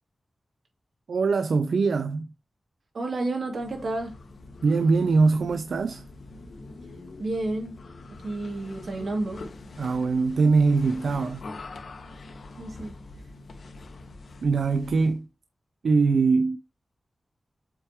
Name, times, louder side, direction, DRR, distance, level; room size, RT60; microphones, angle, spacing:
voice 1, 1.1-2.3 4.6-6.0 9.8-11.4 14.4-15.2 15.8-16.6, right 4 dB, 85° right, 0.4 m, -22 dB
voice 2, 2.9-4.2 7.2-7.8 8.2-9.4 12.6-12.9, right 2 dB, 65° right, 2.6 m, -30 dB
sound 1, 3.5-15.2, left 3 dB, 70° left, 1.2 m, -44 dB
7.7 x 4.5 x 3.1 m
wide cardioid pair, 140°, 0 cm